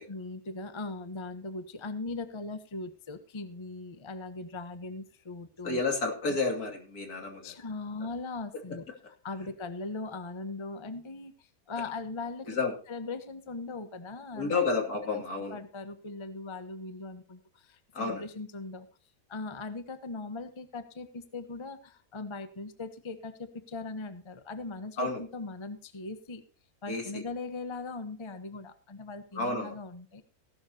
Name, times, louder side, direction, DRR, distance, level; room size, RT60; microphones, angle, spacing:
voice 1, 0.1-5.8 6.3-6.4 7.4-8.8 9.2-12.5 12.9-14.6 15.1-15.2 15.5-18.9 19.3-26.4 26.8-30.2, left 3 dB, 20° left, 10 dB, 0.9 m, -39 dB
voice 2, 5.6-7.5 12.5-12.7 14.3-15.6 17.9-18.2 25.0-25.2 26.9-27.2 29.3-29.7, left 3 dB, 75° left, 3 dB, 3.1 m, -30 dB
16.0 x 12.0 x 2.9 m, 0.41 s
omnidirectional pair, 1.6 m